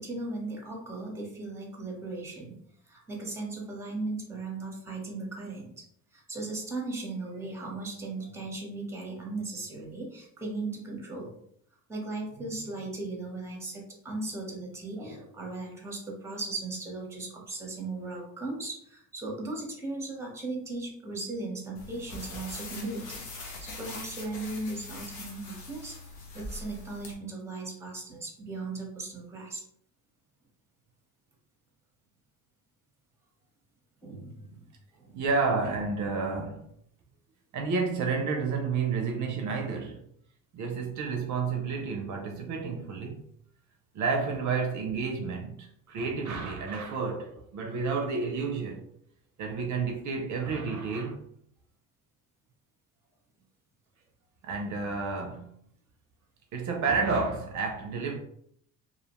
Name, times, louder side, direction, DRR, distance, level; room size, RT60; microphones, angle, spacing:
voice 1, 0.0-2.6 2.9-5.8 6.1-11.3 11.9-29.6 34.0-34.7 35.0-35.2, right 2 dB, 10° right, 0.7 m, -37 dB
sound 1, 21.8-27.1, left 2 dB, 90° left, 0.8 m, -42 dB
voice 2, 35.1-36.7 37.5-40.0 40.5-43.2 43.9-48.8 49.4-51.2 54.4-55.5 56.5-58.2, right 4 dB, 55° right, 0.5 m, -30 dB
2.5 x 2.1 x 2.9 m
cardioid pair, 110°, 35 cm